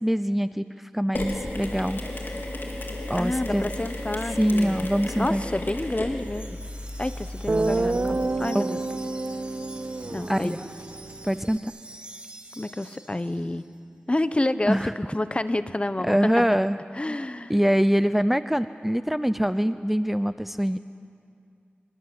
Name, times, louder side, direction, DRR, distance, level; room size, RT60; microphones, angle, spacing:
voice 1, 0.0-2.0 3.1-3.7 4.4-5.4 8.5-8.7 10.3-10.6 11.2-11.6 14.7-14.9 16.0-16.8 17.1-17.2 17.5-20.8, equal, 5° right, 12 dB, 0.6 m, -24 dB
Mechanisms, 1.1-8.3, left 1 dB, 55° left, 3.7 m, -34 dB
voice 2, 3.2-4.8 5.1-6.6 7.0-8.8 10.1-10.6 12.6-13.6 14.1-16.2 16.9-17.5, left 1 dB, 30° left, 12 dB, 1.1 m, -29 dB
Wind chime, 6.2-13.7, right 1 dB, 25° right, 2.4 m, -46 dB
Guitar, 6.9-7.0 7.5-11.6, right 2 dB, 50° right, 1.0 m, -29 dB
27.0 x 23.5 x 8.0 m, 2.3 s
wide cardioid pair, 50°, 4 cm